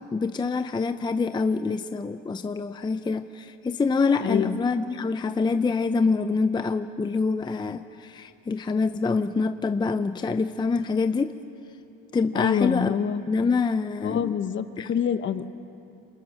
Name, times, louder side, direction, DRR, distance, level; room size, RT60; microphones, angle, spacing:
voice 1, 0.0-11.3 12.1-12.9 13.3-14.4 14.8-14.9, left 4 dB, 15° left, 9 dB, 0.6 m, -26 dB
voice 2, 4.2-4.6 12.3-13.2 14.0-15.4, left 8 dB, 35° left, 12 dB, 1.0 m, -25 dB
27.5 x 20.5 x 6.4 m, 2.7 s
supercardioid pair, 105°, 31 cm